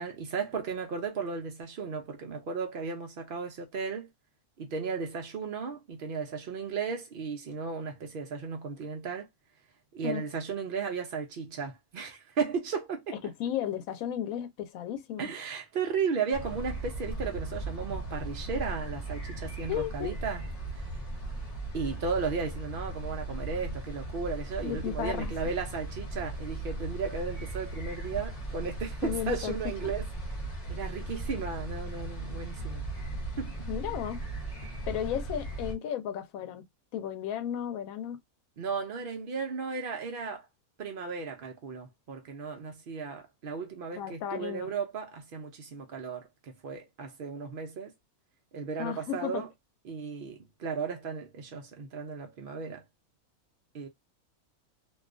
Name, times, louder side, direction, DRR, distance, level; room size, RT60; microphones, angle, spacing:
voice 1, 0.0-4.1 4.6-9.3 9.9-13.2 15.2-20.4 21.7-30.0 30.7-32.8 33.4-33.5 34.6-34.7 38.6-40.4 40.8-47.9 48.5-49.5 49.9-52.8 53.7-53.9, right 5 dB, 85° right, 0.4 m, -35 dB
voice 2, 13.2-15.3 19.7-20.1 24.6-25.3 29.0-29.6 33.7-34.2 34.9-36.7 36.9-38.2 44.0-44.7 48.8-49.4, left 10 dB, 70° left, 1.0 m, -34 dB
sound 1, 16.3-35.7, right 2 dB, 35° left, 0.8 m, -37 dB
2.5 x 2.3 x 2.3 m
omnidirectional pair, 1.6 m